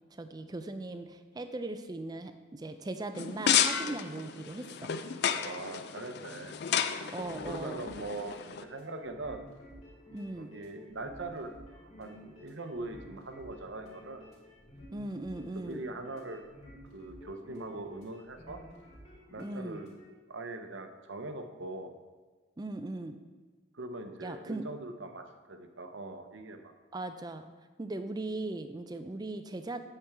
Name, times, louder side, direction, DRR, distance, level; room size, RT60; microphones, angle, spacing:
voice 1, 0.1-4.9 7.1-7.8 10.1-10.5 14.9-15.8 19.4-19.8 22.6-23.2 24.2-24.7 26.9-27.5 27.8-29.8, right 2 dB, 20° right, 9 dB, 0.3 m, -39 dB
sound 1, 3.1-8.6, left 8 dB, 50° left, 0.4 m, -32 dB
voice 2, 5.4-6.6 7.5-9.5 10.4-14.3 15.5-16.4 16.9-18.6 19.3-19.9 20.3-21.9 23.7-26.7, right 2 dB, 60° right, 6 dB, 0.7 m, -41 dB
sound 2, 7.2-20.1, equal, 30° left, 2.1 m, -52 dB
8.7 x 6.8 x 3.5 m, 1.4 s
head